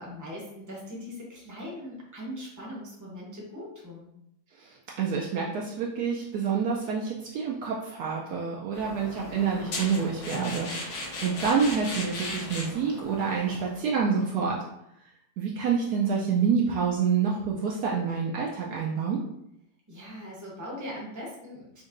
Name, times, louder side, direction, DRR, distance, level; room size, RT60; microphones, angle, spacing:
voice 1, 0.0-4.1 19.9-21.8, equal, 15° right, -3 dB, 0.6 m, -40 dB
voice 2, 4.6-14.6 15.4-19.2, right 6 dB, 75° right, -2 dB, 1.0 m, -27 dB
sound 1, 8.7-13.8, left 2 dB, 65° left, 1.3 m, -37 dB
5.2 x 2.6 x 2.5 m, 0.80 s
omnidirectional pair, 1.8 m